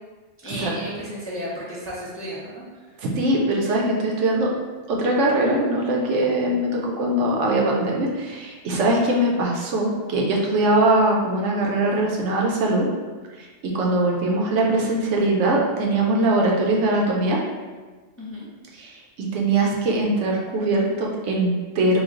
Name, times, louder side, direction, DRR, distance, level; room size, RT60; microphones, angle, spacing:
voice 1, 0.4-2.6 18.2-18.5, equal, 20° left, -7 dB, 0.4 m, -33 dB
voice 2, 3.0-4.5 4.9-12.9 13.4-17.4 18.8-22.0, right 1 dB, 85° right, -1 dB, 1.0 m, -21 dB
3.1 x 2.3 x 3.6 m, 1.3 s
omnidirectional pair, 1.2 m